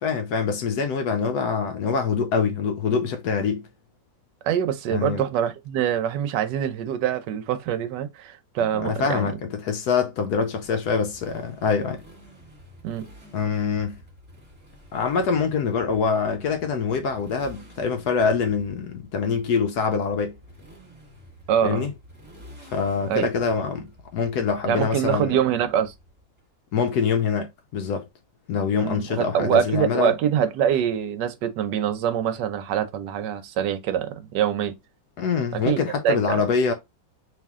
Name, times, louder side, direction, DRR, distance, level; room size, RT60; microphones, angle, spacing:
voice 1, 0.0-3.7 4.9-5.2 8.7-12.0 13.3-14.0 14.9-20.4 21.6-21.9 22.6-25.3 26.7-28.1 28.5-30.1 35.2-36.7, left 5 dB, 70° left, 1.0 m, -25 dB
voice 2, 4.4-9.3 12.8-13.0 21.5-21.9 23.1-23.3 24.7-25.9 28.8-34.7 35.7-36.4, right 9 dB, 70° right, 1.2 m, -24 dB
Motorcycle, 10.6-26.4, equal, 15° right, 1.6 m, -49 dB
3.4 x 3.0 x 3.5 m
omnidirectional pair, 2.0 m